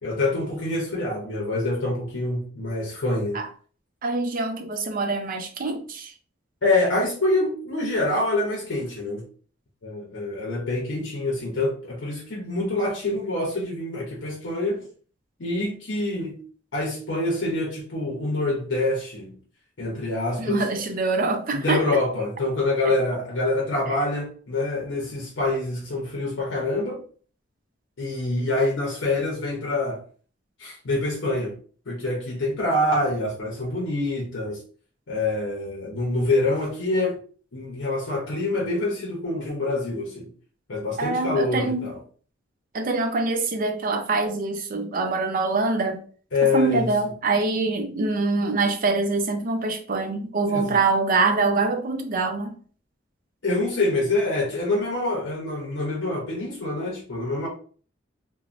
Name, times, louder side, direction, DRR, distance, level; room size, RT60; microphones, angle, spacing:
voice 1, 0.0-3.4 6.6-9.2 9.8-14.9 15.4-16.4 16.7-19.4 19.8-20.7 21.5-27.0 28.0-30.0 30.6-31.6 31.9-34.6 35.1-37.2 37.5-40.3 40.7-42.0 46.3-47.0 50.5-50.8 53.4-57.5, left 2 dB, 70° left, 0.7 m, -26 dB
voice 2, 4.0-6.1 20.4-21.8 41.0-41.9 42.7-46.0 46.4-52.5, right 3 dB, 45° right, 0.5 m, -24 dB
3.0 x 2.1 x 2.5 m
head